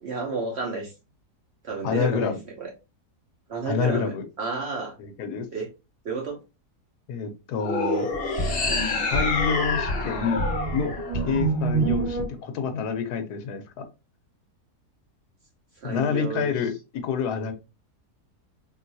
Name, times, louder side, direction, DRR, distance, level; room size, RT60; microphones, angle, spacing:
voice 1, 0.0-0.9 1.6-2.7 3.5-5.0 5.5-5.7 6.0-6.4 11.2-11.5 15.8-16.5, right 4 dB, 55° right, 1 dB, 0.8 m, -31 dB
voice 2, 1.8-2.4 3.7-4.2 5.0-5.5 7.1-8.1 9.1-10.4 10.7-13.9 15.8-17.5, left 6 dB, 80° left, 7 dB, 1.2 m, -28 dB
sound 1, 7.6-11.9, left 3 dB, 50° left, 0.7 m, -28 dB
sound 2, 8.1-12.3, right 3 dB, 30° right, 2.1 m, -28 dB
3.8 x 2.5 x 2.6 m, 0.27 s
omnidirectional pair, 1.7 m